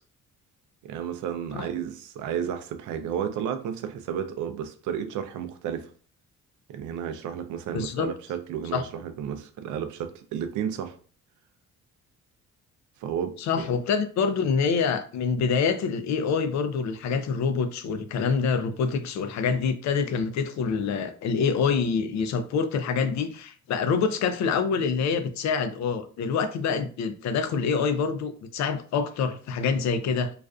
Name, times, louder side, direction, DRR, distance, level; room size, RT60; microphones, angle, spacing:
voice 1, 0.8-5.9 6.7-11.0 13.0-13.6, right 8 dB, 75° right, 0.5 m, -32 dB
voice 2, 7.7-8.1 8.7-8.8 13.4-30.3, left 5 dB, 65° left, 0.4 m, -26 dB
2.4 x 2.4 x 2.3 m
cardioid pair, 90°, 30 cm